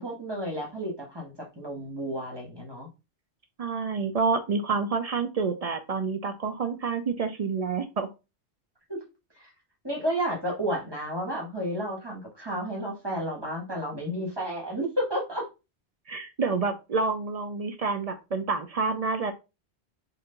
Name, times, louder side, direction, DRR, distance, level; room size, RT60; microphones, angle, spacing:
voice 1, 0.0-2.9 8.9-9.0 9.4-9.5 9.8-15.5, equal, 20° right, 1.4 m, -32 dB
voice 2, 3.6-8.1 16.1-19.3, right 4 dB, 55° right, 0.4 m, -28 dB
4.4 x 2.5 x 3.8 m
omnidirectional pair, 1.2 m